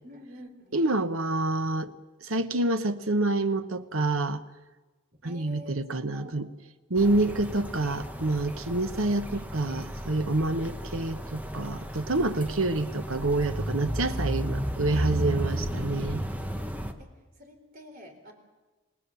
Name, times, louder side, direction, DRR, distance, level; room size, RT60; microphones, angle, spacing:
voice 1, 0.0-1.0 5.1-6.5 9.3-9.5 10.5-10.8 16.8-18.3, left 1 dB, 45° right, 3.8 m, -49 dB
voice 2, 0.7-1.9 2.2-4.4 5.2-6.5 6.9-16.3, right 2 dB, 80° right, 1.2 m, -27 dB
sound 1, 7.0-16.9, equal, 5° right, 1.2 m, -33 dB
28.0 x 19.0 x 7.1 m
head